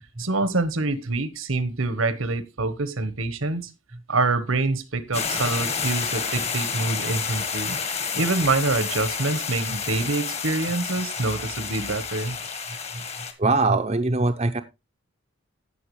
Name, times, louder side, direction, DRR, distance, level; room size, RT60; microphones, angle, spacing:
voice 1, 0.2-3.7 4.1-7.8 8.1-12.4, right 3 dB, 80° right, 1.3 m, -26 dB
sound 1, 5.1-13.3, left 6 dB, 30° left, 1.5 m, -30 dB
voice 2, 13.4-14.6, right 3 dB, 30° right, 0.7 m, -22 dB
16.0 x 5.9 x 3.1 m
head